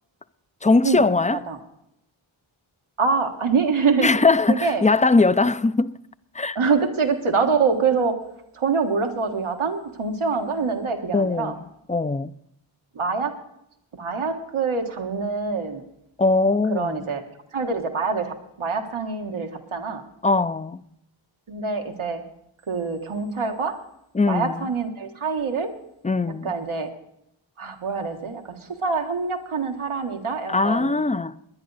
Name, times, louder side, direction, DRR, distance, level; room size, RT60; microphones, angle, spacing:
voice 1, 0.6-1.4 4.0-6.0 6.3-6.6 11.1-11.5 11.9-12.3 16.2-17.1 20.2-20.8 24.1-24.6 26.0-26.5 30.5-31.4, left 3 dB, 15° left, 0.4 m, -20 dB
voice 2, 1.3-1.6 3.0-4.1 4.5-4.8 6.5-8.1 8.5-11.5 12.9-13.3 13.9-15.8 16.7-17.2 17.5-20.0 21.5-22.2 22.7-23.8 24.3-25.7 26.4-26.9 27.6-30.9, right 5 dB, 90° right, 1.6 m, -25 dB
19.5 x 10.5 x 4.0 m
wide cardioid pair, 60°, 48 cm